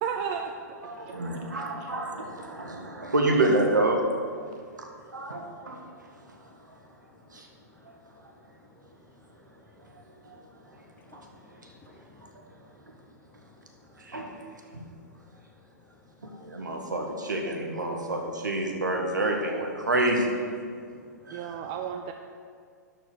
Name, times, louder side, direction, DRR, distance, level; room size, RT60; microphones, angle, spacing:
voice 1, 0.0-0.5 1.0-1.5 1.8-1.9 21.3-22.1, right 7 dB, 40° right, 5 dB, 0.6 m, -33 dB
voice 2, 0.8-4.1 4.8-5.8 7.3-7.5 10.2-10.4 10.7-10.8 11.1-11.3 14.0-14.3 14.7-14.8 16.2-20.3 21.2-21.6, right 2 dB, 90° right, 2 dB, 1.7 m, -28 dB
voice 3, 10.7-12.6 13.4-13.5 14.2-14.4 14.8-14.9 16.7-16.8, left 4 dB, 20° left, 4 dB, 1.0 m, -57 dB
12.0 x 4.6 x 6.6 m, 2.2 s
hypercardioid pair, 115°, 10 cm